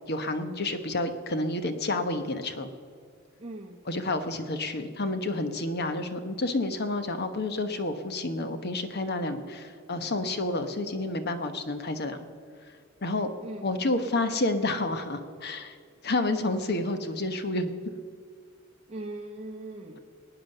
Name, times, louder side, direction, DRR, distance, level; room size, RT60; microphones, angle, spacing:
voice 1, 0.1-2.7 3.9-12.2 13.0-13.3 13.6-15.8 16.0-17.7, left 2 dB, 50° left, 9 dB, 1.1 m, -29 dB
voice 2, 3.4-3.8 13.4-14.0 18.9-20.0, right 2 dB, 30° right, -2 dB, 1.2 m, -40 dB
21.0 x 9.0 x 6.7 m, 2.2 s
head